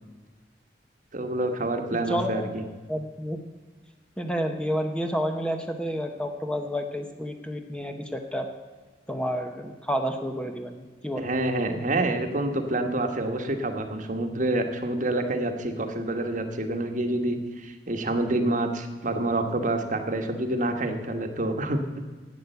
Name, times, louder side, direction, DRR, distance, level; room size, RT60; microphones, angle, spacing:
voice 1, 1.1-2.6 11.2-21.8, right 2 dB, 45° right, 6 dB, 1.3 m, -27 dB
voice 2, 1.9-2.5 2.9-3.4 4.2-8.5 9.1-11.3, equal, 5° left, 4 dB, 0.8 m, -30 dB
11.5 x 8.6 x 8.0 m, 1.4 s
head